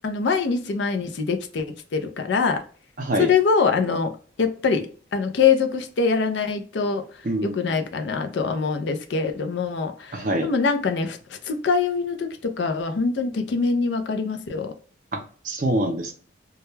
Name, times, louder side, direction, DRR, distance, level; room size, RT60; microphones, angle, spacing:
voice 1, 0.0-2.6 3.2-4.1 4.4-14.7, left 5 dB, 70° left, 0.4 m, -24 dB
voice 2, 7.2-7.7 10.1-10.5 15.1-15.2 15.4-16.1, right 1 dB, 45° right, 0.5 m, -25 dB
2.2 x 2.1 x 3.1 m
head